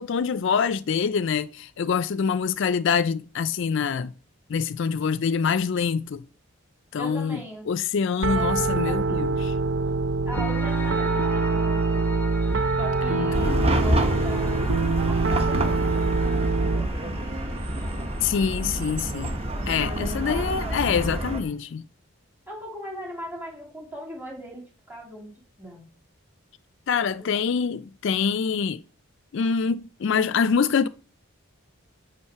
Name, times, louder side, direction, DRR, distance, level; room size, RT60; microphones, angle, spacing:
voice 1, 0.0-4.1 4.5-6.2 6.9-7.4 7.7-9.5 13.1-13.7 18.2-19.3 19.7-21.8 26.9-28.8 29.3-30.9, left 6 dB, 55° left, 0.4 m, -25 dB
voice 2, 6.9-7.7 8.2-9.3 10.2-12.2 12.8-14.7 15.1-17.3 19.5-21.1 22.5-25.3 25.6-25.9 27.2-27.4, equal, 10° right, 2.6 m, -40 dB
Piano, 8.2-16.9, right 3 dB, 55° right, 0.6 m, -24 dB
Piano 2, 10.3-21.5, left 2 dB, 10° left, 1.2 m, -41 dB
Chatter / Car passing by / Traffic noise roadway noise, 13.3-21.4, right 1 dB, 25° right, 1.0 m, -27 dB
7.3 x 5.5 x 5.7 m
head